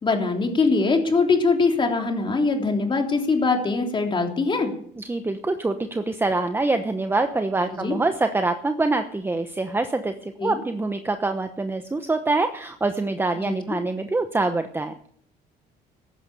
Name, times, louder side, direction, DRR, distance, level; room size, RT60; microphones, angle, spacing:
voice 1, 0.0-4.7 7.7-8.0 10.4-10.6 13.4-13.6, left 4 dB, 30° left, 3 dB, 3.4 m, -22 dB
voice 2, 5.0-14.9, right 3 dB, 15° right, 8 dB, 1.0 m, -25 dB
15.0 x 11.5 x 6.8 m, 0.62 s
cardioid pair, 110°, 17 cm